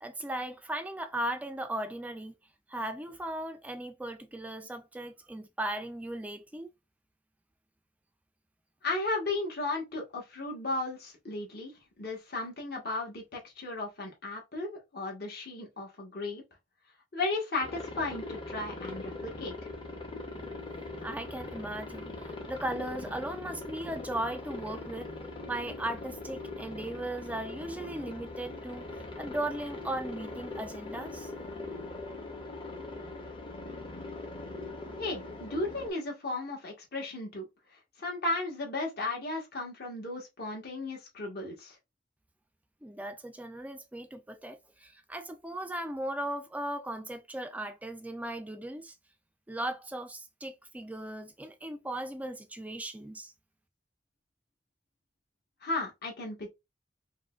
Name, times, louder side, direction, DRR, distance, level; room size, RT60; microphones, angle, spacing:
voice 1, 0.0-2.3 2.7-6.7 21.0-25.1 25.5-31.3 42.8-49.0 49.5-53.3, right 1 dB, 10° right, 0.3 m, -37 dB
voice 2, 8.8-16.4 17.1-19.6 35.0-37.5 38.0-41.8 55.6-56.5, left 2 dB, 60° left, 1.2 m, -35 dB
Aircraft, 17.6-35.9, left 2 dB, 30° left, 0.6 m, -41 dB
4.8 x 2.2 x 2.4 m
head